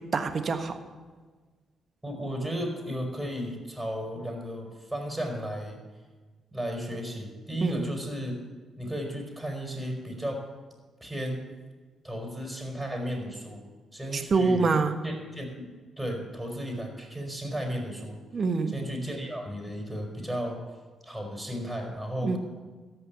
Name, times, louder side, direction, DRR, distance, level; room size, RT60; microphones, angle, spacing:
voice 1, 0.1-0.7 7.6-7.9 14.1-15.0 18.3-18.8 22.2-22.4, right 4 dB, 50° right, 7 dB, 1.4 m, -26 dB
voice 2, 2.0-5.8 6.5-8.3 8.8-10.4 11.0-11.4 12.0-13.6 13.9-15.7 16.0-18.2 18.7-20.6 21.0-22.4, equal, 10° right, 0 dB, 4.2 m, -34 dB
14.5 x 5.5 x 9.2 m, 1.4 s
supercardioid pair, 60°, 0 cm